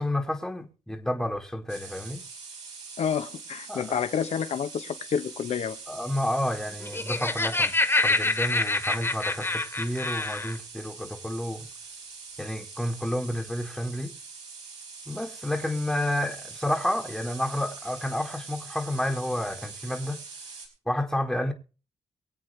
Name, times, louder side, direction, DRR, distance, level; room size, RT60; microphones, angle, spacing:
voice 1, 0.0-2.2 3.7-3.8 5.9-11.7 12.4-14.1 15.1-20.2 20.9-21.5, left 1 dB, 5° left, 1.6 m, -30 dB
sound 1, 1.7-20.7, right 4 dB, 70° right, 4.4 m, -43 dB
voice 2, 3.0-5.8, left 7 dB, 65° left, 1.0 m, -29 dB
Laughter, 6.7-10.6, left 2 dB, 20° left, 1.7 m, -26 dB
23.5 x 8.0 x 3.3 m
cardioid pair, 65°, 12 cm